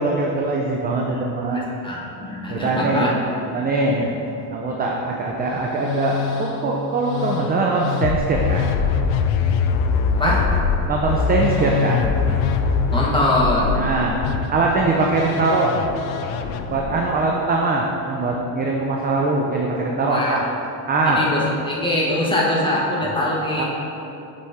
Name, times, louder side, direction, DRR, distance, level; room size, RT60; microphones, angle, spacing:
voice 1, 0.0-1.6 2.5-3.1 3.5-4.1 4.5-8.7 10.2-10.4 10.9-12.1 13.7-14.2 14.5-15.9 16.7-20.4 20.9-21.3 23.0-23.1 23.6-23.7, right 3 dB, 20° right, -1 dB, 0.4 m, -22 dB
voice 2, 1.8-3.1 3.5-3.6 3.9-4.0 10.2-10.4 12.9-13.7 20.1-20.4 21.1-23.6, left 1 dB, 10° left, -5 dB, 1.2 m, -22 dB
Musical instrument, 5.4-17.2, left 6 dB, 65° left, 0.6 m, -23 dB
7.8 x 4.2 x 3.5 m, 2.9 s
supercardioid pair, 105°, 49 cm